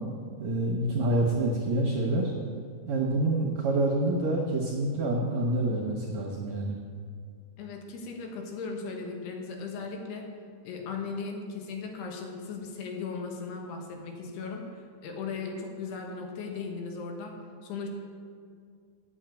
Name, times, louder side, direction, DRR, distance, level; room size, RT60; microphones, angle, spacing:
voice 1, 0.4-2.3 2.9-6.8, right 2 dB, 65° right, -2 dB, 1.8 m, -27 dB
voice 2, 7.6-10.3 10.6-17.9, left 4 dB, 80° left, 2 dB, 3.3 m, -37 dB
9.0 x 7.5 x 8.9 m, 2.2 s
omnidirectional pair, 4.6 m